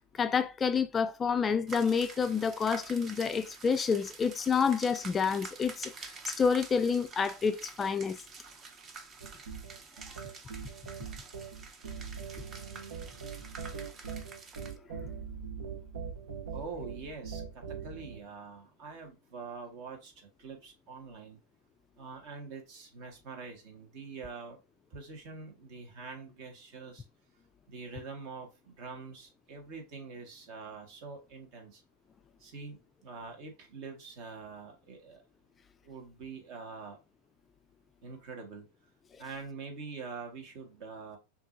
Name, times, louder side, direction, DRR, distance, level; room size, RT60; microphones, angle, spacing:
voice 1, 0.0-8.2, left 6 dB, 20° left, 0.3 m, -29 dB
sound 1, 1.7-14.8, right 4 dB, 30° right, 0.7 m, -48 dB
sound 2, 9.2-18.2, right 6 dB, 85° right, 1.1 m, -42 dB
voice 2, 16.5-21.4 22.0-24.6 24.9-27.0 27.7-31.8 32.4-35.2 35.8-37.0 38.0-38.7 39.2-41.2, right 4 dB, 55° right, 1.6 m, -45 dB
5.7 x 2.8 x 2.6 m
supercardioid pair, 130°, 0 cm